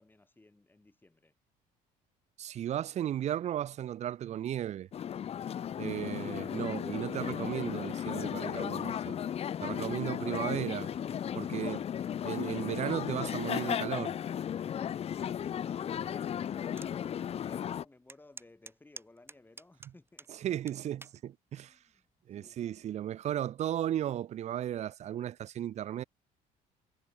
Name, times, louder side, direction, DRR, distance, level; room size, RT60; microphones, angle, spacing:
voice 1, 0.0-1.3 14.7-14.9 15.4-20.3 21.6-21.8 22.3-22.7, left 2 dB, 10° left, 1.8 m, -58 dB
voice 2, 2.4-4.9 5.8-9.2 9.6-10.9 11.3-11.9 12.2-14.1 19.8-19.9 20.3-21.8 22.3-26.0, right 11 dB, 45° right, 0.4 m, -35 dB
sound 1, 4.9-17.8, left 9 dB, 40° left, 0.5 m, -35 dB
sound 2, 16.8-16.9 17.4-17.5 18.1-20.3 20.7-21.2 21.9-22.2, right 2 dB, 15° right, 1.5 m, -49 dB
cardioid pair, 95°, 17 cm